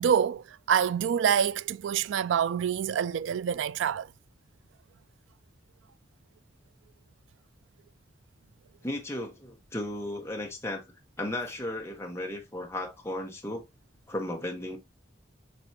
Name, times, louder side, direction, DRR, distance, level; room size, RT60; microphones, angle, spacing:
voice 1, 0.0-4.1, right 8 dB, 85° right, 0.3 m, -26 dB
voice 2, 8.8-10.8 11.2-13.6 14.1-14.8, left 1 dB, 15° left, 1.2 m, -35 dB
7.8 x 4.4 x 2.8 m
head